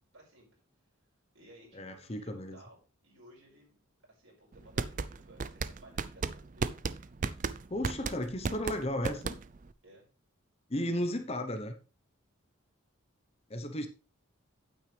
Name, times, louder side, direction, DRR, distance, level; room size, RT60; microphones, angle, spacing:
voice 1, 0.1-0.5 1.3-6.8 9.8-10.1, right 1 dB, 70° right, -2 dB, 5.4 m, -58 dB
voice 2, 1.7-2.6 7.7-9.4 10.7-11.8 13.5-13.9, left 1 dB, 30° left, 7 dB, 0.9 m, -34 dB
sound 1, 4.5-9.7, right 4 dB, 35° right, 0.4 m, -34 dB
9.0 x 8.8 x 3.4 m, 0.33 s
head